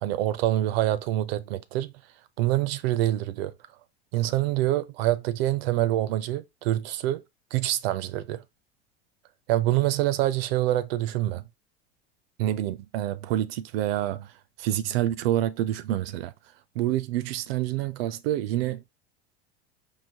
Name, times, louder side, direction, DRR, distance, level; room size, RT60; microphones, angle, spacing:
voice 1, 0.0-1.9 2.4-3.5 4.1-7.2 7.5-8.4 9.5-11.4 12.4-14.3 14.6-16.3 16.8-18.9, right 14 dB, 65° right, 0.5 m, -26 dB
4.7 x 2.6 x 2.8 m
hypercardioid pair, 85°, 33 cm